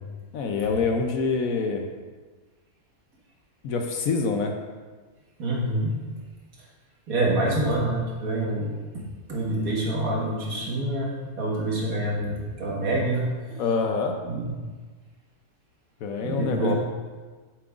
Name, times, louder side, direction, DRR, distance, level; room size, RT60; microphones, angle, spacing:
voice 1, 0.3-1.9 3.6-4.5 13.6-14.2 16.0-16.7, left 4 dB, 70° left, 4 dB, 1.0 m, -25 dB
voice 2, 5.4-5.9 6.6-6.7 7.1-8.8 9.3-13.6 14.2-14.5 16.2-16.7, right 1 dB, 65° right, -4 dB, 1.9 m, -26 dB
7.7 x 7.4 x 2.5 m, 1.4 s
omnidirectional pair, 1.6 m